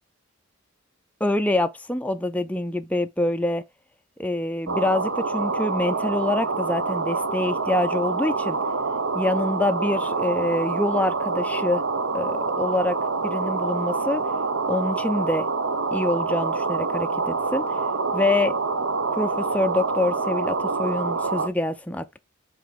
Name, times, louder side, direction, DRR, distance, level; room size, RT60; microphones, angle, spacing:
voice 1, 1.2-3.6 4.2-8.6 9.1-11.8 12.1-13.0 13.2-14.2 14.7-15.5 15.9-17.8 18.1-18.5 19.1-22.2, left 1 dB, 5° left, 0.4 m, -26 dB
sound 1, 4.7-21.5, right 4 dB, 70° right, 1.2 m, -26 dB
7.5 x 3.2 x 5.1 m
head